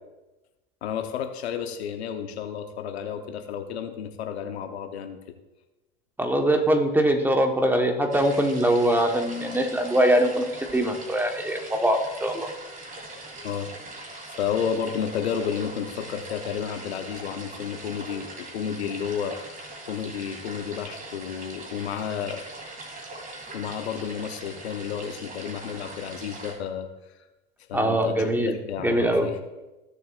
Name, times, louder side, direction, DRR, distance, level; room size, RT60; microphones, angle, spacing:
voice 1, 0.8-5.2 13.4-13.7 14.4-19.4 19.8-22.4 23.5-26.9 27.6-29.4, left 8 dB, 90° left, 7 dB, 1.0 m, -31 dB
voice 2, 6.2-10.4 10.7-12.5 27.7-28.5 28.8-29.3, right 1 dB, 5° right, 4 dB, 1.2 m, -22 dB
sound 1, 8.1-26.5, right 2 dB, 25° right, 2.3 m, -41 dB
15.0 x 6.7 x 2.5 m, 1.1 s
hypercardioid pair, 105°, 31 cm